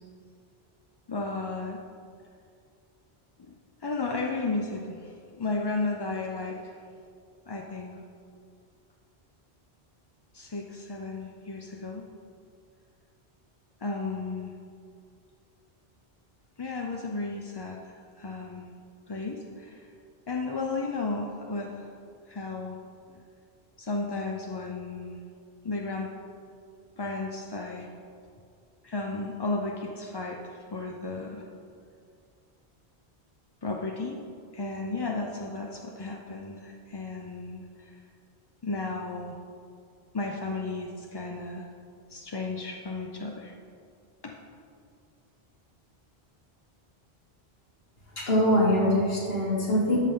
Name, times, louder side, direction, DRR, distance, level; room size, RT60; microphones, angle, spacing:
voice 1, 1.1-1.8 3.4-3.6 3.8-6.8 7.5-8.0 10.3-12.1 13.8-14.5 16.6-18.7 19.1-19.8 20.3-21.9 22.3-22.8 23.8-25.2 25.6-26.1 27.0-27.9 28.8-31.4 33.6-34.2 34.5-37.9 38.6-39.4 40.1-41.7 42.1-43.5 44.2-44.3, left 3 dB, 35° left, 1 dB, 0.4 m, -34 dB
voice 2, 48.2-50.0, equal, 65° left, -5 dB, 2.4 m, -23 dB
13.0 x 5.7 x 3.6 m, 2.3 s
omnidirectional pair, 1.1 m